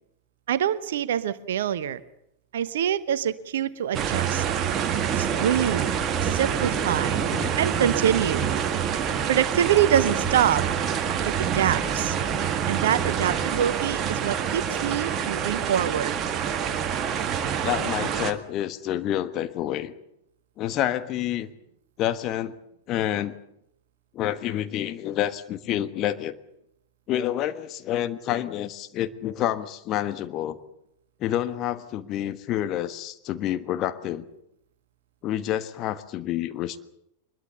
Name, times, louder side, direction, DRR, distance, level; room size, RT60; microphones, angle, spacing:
voice 1, 0.5-2.0 2.5-4.4 5.1-5.9 6.2-7.2 7.6-8.4 9.3-10.6 11.4-12.2 12.7-16.1, right 10 dB, 60° right, 15 dB, 1.1 m, -25 dB
sound 1, 3.9-18.3, right 8 dB, 30° right, 1.8 m, -26 dB
voice 2, 7.2-7.5 17.6-19.9 20.6-21.5 22.0-22.5 22.9-23.4 24.1-26.3 27.1-30.6 31.2-34.3 35.2-36.8, left 12 dB, 35° left, 11 dB, 1.4 m, -28 dB
23.5 x 21.5 x 7.0 m, 0.78 s
figure-of-eight pair, 90°, 0 cm